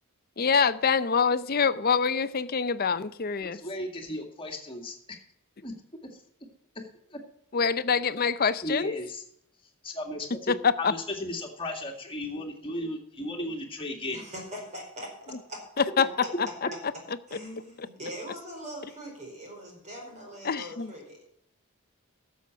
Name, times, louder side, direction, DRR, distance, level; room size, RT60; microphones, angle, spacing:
voice 1, 0.4-3.6 7.5-8.9 10.5-10.9 15.8-16.1 16.4-16.7 20.4-20.9, left 6 dB, 45° left, 0.6 m, -25 dB
voice 2, 3.4-5.0 5.6-5.7 7.1-7.2 8.6-9.2 9.8-14.3, left 1 dB, 25° left, 2.1 m, -35 dB
voice 3, 14.1-15.1 15.5-15.6 17.3-21.3, equal, 35° right, 4.6 m, -41 dB
12.0 x 7.2 x 6.1 m
head